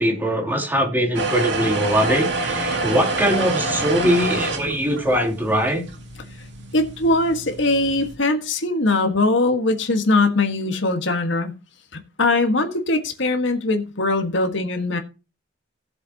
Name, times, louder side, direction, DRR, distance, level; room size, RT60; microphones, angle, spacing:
voice 1, 0.0-5.8, equal, 10° right, 3.0 m, -21 dB
sound 1, 1.1-8.2, right 2 dB, 60° right, 2.3 m, -27 dB
voice 2, 6.7-11.5 11.9-15.0, left 2 dB, 70° left, 1.6 m, -21 dB
17.0 x 7.3 x 2.9 m
head